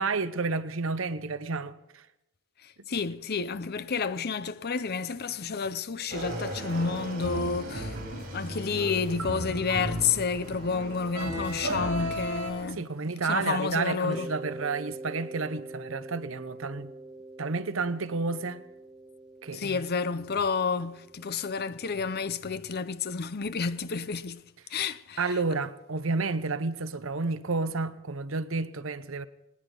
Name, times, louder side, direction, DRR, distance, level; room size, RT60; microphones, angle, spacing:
voice 1, 0.0-2.1 12.6-16.9 17.4-18.6 19.4-19.8 25.2-29.3, right 3 dB, 65° right, 0.8 m, -31 dB
voice 2, 2.6-12.8 13.3-14.3 19.5-24.4 24.7-25.4, left 5 dB, 50° left, 0.6 m, -30 dB
Motorcycle / Engine, 6.1-12.7, equal, 45° right, 5.0 m, -40 dB
sound 1, 6.5-12.5, equal, 85° right, 3.2 m, -36 dB
Mallet percussion, 14.1-22.7, right 2 dB, 5° right, 0.8 m, -45 dB
19.5 x 19.0 x 3.9 m
head